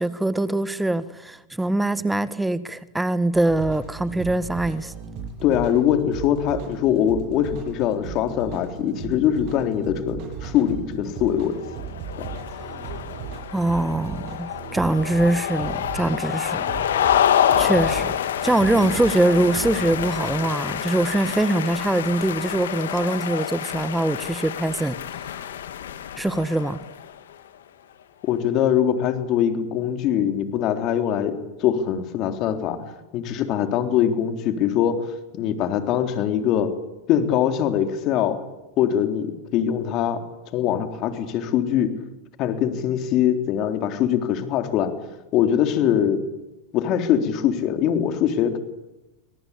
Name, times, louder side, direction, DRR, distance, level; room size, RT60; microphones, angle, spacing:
voice 1, 0.0-4.9 13.5-16.6 17.6-18.1 18.4-25.0 26.2-26.8, right 2 dB, 5° right, 1.5 m, -23 dB
sound 1, 3.3-20.4, right 7 dB, 55° right, 7.9 m, -36 dB
voice 2, 5.4-11.6 18.7-18.8 28.2-32.8 33.1-36.7 37.1-38.4 38.8-40.2 40.5-41.9 42.4-44.9 45.3-46.2 46.7-48.6, left 9 dB, 45° left, 3.6 m, -22 dB
sound 2, 11.5-27.2, left 10 dB, 85° left, 2.2 m, -27 dB
25.0 x 19.0 x 8.5 m
hypercardioid pair, 110°, 0 cm